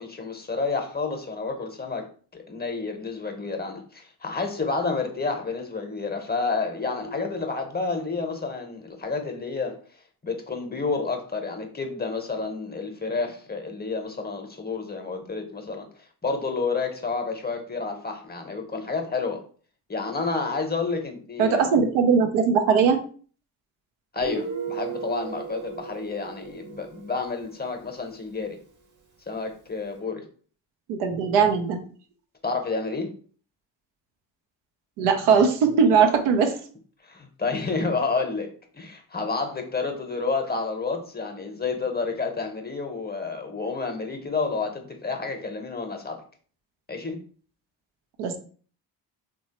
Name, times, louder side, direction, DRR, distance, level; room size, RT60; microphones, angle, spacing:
voice 1, 0.0-9.8 10.2-15.9 16.2-19.4 19.9-21.7 24.1-28.6 29.3-30.2 32.4-33.1 37.0-46.2 46.9-47.2, left 4 dB, 20° left, 4 dB, 0.7 m, -30 dB
voice 2, 21.4-23.0 30.9-31.8 35.0-36.6 48.2-48.4, right 6 dB, 85° right, 5 dB, 0.6 m, -20 dB
Guitar, 24.2-27.7, right 5 dB, 40° right, 0.8 m, -36 dB
3.0 x 2.2 x 2.8 m, 0.43 s
hypercardioid pair, 40°, 49 cm